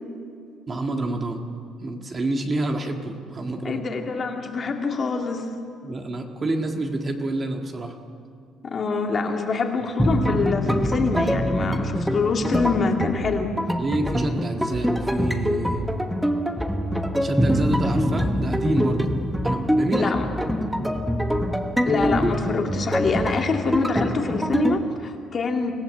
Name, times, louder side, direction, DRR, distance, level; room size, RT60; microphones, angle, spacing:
voice 1, 0.7-1.4 1.8-3.8 5.8-7.9 13.8-15.9 17.2-19.1 19.4-20.1 20.5-21.0, right 2 dB, 25° right, 3 dB, 1.7 m, -28 dB
voice 2, 3.6-5.5 8.6-13.5 20.0-20.3 20.6-20.7 21.9-25.7, left 4 dB, 30° left, 3 dB, 2.1 m, -25 dB
sound 1, 10.0-24.8, equal, ahead, 1.1 m, -24 dB
25.5 x 17.0 x 7.6 m, 2.5 s
cardioid pair, 145°, 0 cm